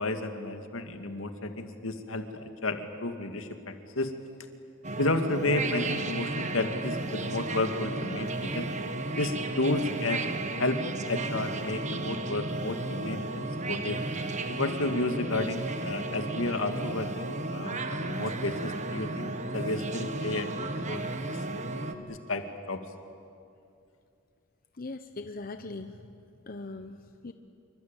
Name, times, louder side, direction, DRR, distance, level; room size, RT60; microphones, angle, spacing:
voice 1, 0.0-4.1 5.0-8.7 9.2-10.3 10.6-14.0 14.5-21.4 21.9-22.8, left 2 dB, 80° left, 6 dB, 2.2 m, -32 dB
sound 1, 4.8-21.9, right 2 dB, 35° right, 1.5 m, -34 dB
voice 2, 24.8-26.0 26.5-27.3, left 3 dB, 45° left, 8 dB, 0.9 m, -40 dB
27.0 x 24.5 x 9.1 m, 2.5 s
head